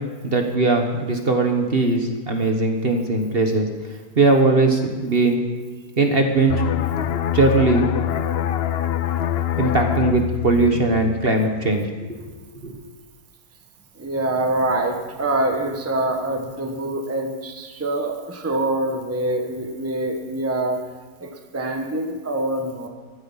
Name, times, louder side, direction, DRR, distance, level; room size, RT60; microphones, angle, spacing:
voice 1, 0.2-3.7 4.2-5.4 6.0-6.6 7.3-7.9 9.6-12.2 12.6-12.8, right 3 dB, 40° right, 4 dB, 1.4 m, -19 dB
sound 1, 6.5-11.9 12.2-12.5, left 10 dB, 80° left, 0.5 m, -25 dB
voice 2, 13.9-20.8 21.2-22.9, right 1 dB, 10° right, 3 dB, 1.1 m, -25 dB
16.0 x 13.0 x 5.7 m, 1.3 s
omnidirectional pair, 1.7 m